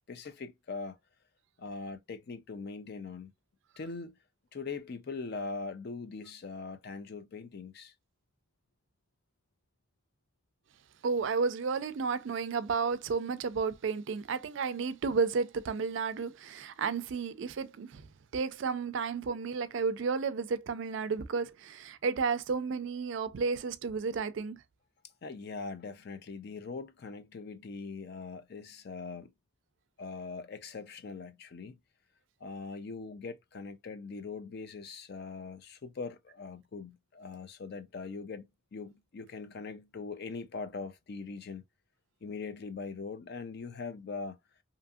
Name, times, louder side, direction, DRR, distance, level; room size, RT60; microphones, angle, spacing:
voice 1, 0.1-1.0 1.6-3.3 3.8-4.2 4.5-7.9 25.2-29.3 30.0-31.8 32.4-41.6 42.2-44.4, left 4 dB, 50° left, 0.4 m, -41 dB
voice 2, 11.0-18.1 18.3-24.6, right 5 dB, 60° right, 0.4 m, -32 dB
2.8 x 2.6 x 2.2 m
head